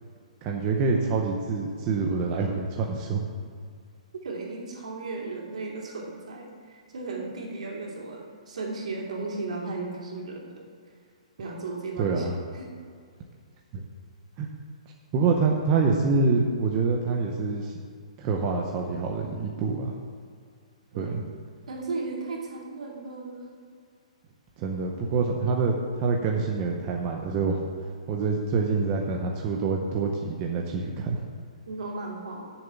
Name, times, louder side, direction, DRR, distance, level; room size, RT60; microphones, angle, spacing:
voice 1, 0.4-3.2 12.0-12.4 13.7-13.8 14.4-14.5 15.1-17.7 18.2-20.0 21.0-21.2 24.6-27.6 28.1-31.2, right 4 dB, 20° right, 0 dB, 0.6 m, -26 dB
voice 2, 4.2-10.7 11.4-12.3 12.5-12.7 20.9-21.2 21.7-23.5 31.7-32.5, right 3 dB, 70° right, -2 dB, 2.8 m, -35 dB
7.2 x 7.0 x 8.2 m, 2.1 s
hypercardioid pair, 175°, 4 cm